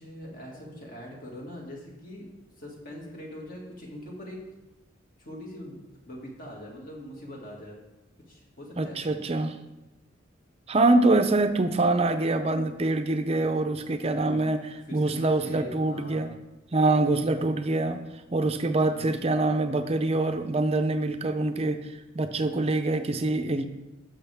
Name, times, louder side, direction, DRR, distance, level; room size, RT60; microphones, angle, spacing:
voice 1, 0.0-4.4 5.2-5.8 6.1-7.8 8.3-9.2 14.0-14.4 14.9-16.3 18.8-19.2 22.4-22.6, left 1 dB, 45° left, -2 dB, 2.1 m, -42 dB
voice 2, 8.8-9.5 10.7-16.3 16.7-18.0 18.3-23.6, right 2 dB, 30° right, 8 dB, 0.6 m, -25 dB
11.5 x 6.4 x 3.5 m, 1.0 s
head